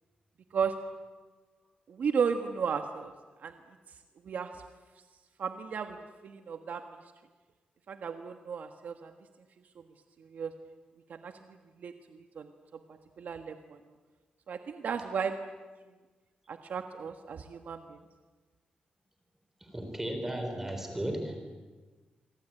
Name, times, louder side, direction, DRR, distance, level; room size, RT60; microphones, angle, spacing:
voice 1, 1.9-3.1 3.4-3.5 4.2-4.5 5.4-6.0 6.2-6.9 7.9-9.1 10.3-10.5 11.1-11.3 11.8-12.5 13.2-13.8 14.5-15.4 16.5-18.0, right 6 dB, 65° right, 6 dB, 1.5 m, -34 dB
voice 2, 19.6-21.5, right 1 dB, 10° right, 5 dB, 3.9 m, -35 dB
26.5 x 24.5 x 8.9 m, 1.3 s
wide cardioid pair, 155°, 3 cm